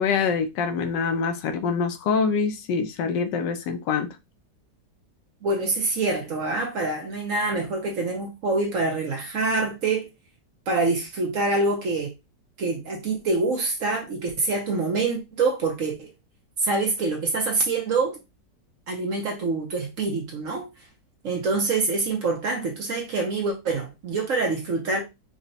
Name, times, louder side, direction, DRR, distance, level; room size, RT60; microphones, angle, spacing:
voice 1, 0.0-4.1, left 5 dB, 80° left, 1.3 m, -25 dB
voice 2, 5.4-10.1 10.7-12.1 12.6-16.1 16.6-18.2 18.9-20.7 21.2-25.0, right 3 dB, 55° right, 1.0 m, -25 dB
5.0 x 2.2 x 2.7 m
omnidirectional pair, 1.9 m